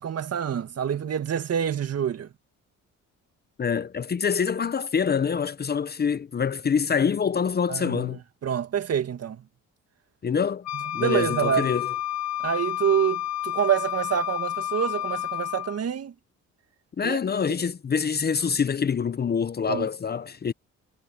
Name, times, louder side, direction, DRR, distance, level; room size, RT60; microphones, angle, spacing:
voice 1, 0.0-2.3 7.7-9.4 10.9-11.7 12.4-16.1 17.0-17.2 19.7-19.9, right 8 dB, 55° right, 1.9 m, -27 dB
voice 2, 3.6-8.2 10.2-10.7 10.9-11.9 17.0-20.5, left 6 dB, 35° left, 0.7 m, -25 dB
Wind instrument woodwind instrument, 10.6-15.8, left 13 dB, 60° left, 1.6 m, -30 dB
cardioid pair, 90°, 30 cm